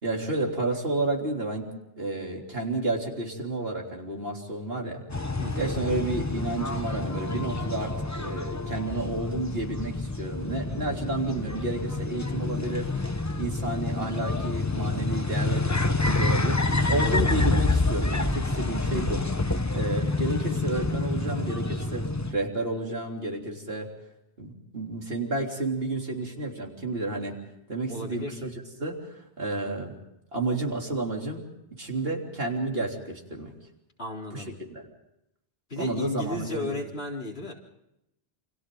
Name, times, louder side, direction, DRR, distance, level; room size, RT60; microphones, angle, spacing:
voice 1, 0.0-1.7 2.0-5.0 5.6-12.9 13.4-19.2 19.5-23.9 24.4-27.4 27.7-28.5 28.8-29.9 30.3-31.4 31.8-33.5 34.3-34.8 35.8-36.8, right 2 dB, 70° right, 0 dB, 3.7 m, -31 dB
Central Java City, 5.1-22.3, left 2 dB, 15° left, 0.9 m, -28 dB
voice 2, 5.4-5.7 16.9-17.2 27.9-28.4 34.0-34.5 35.7-37.5, left 2 dB, 75° left, -1 dB, 4.0 m, -34 dB
28.5 x 26.5 x 3.9 m, 0.84 s
omnidirectional pair, 1.0 m